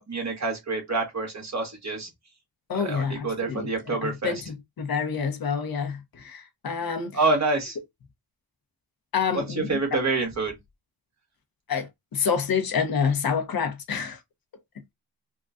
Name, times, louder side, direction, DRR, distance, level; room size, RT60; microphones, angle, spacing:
voice 1, 0.0-2.1 2.7-4.3 7.1-7.8 9.3-9.4 9.7-10.5, right 3 dB, 45° right, 1.6 m, -27 dB
voice 2, 2.7-7.2 9.1-10.0 11.7-14.2, left 6 dB, 65° left, 0.9 m, -28 dB
3.6 x 2.2 x 2.5 m
wide cardioid pair, 90°, 39 cm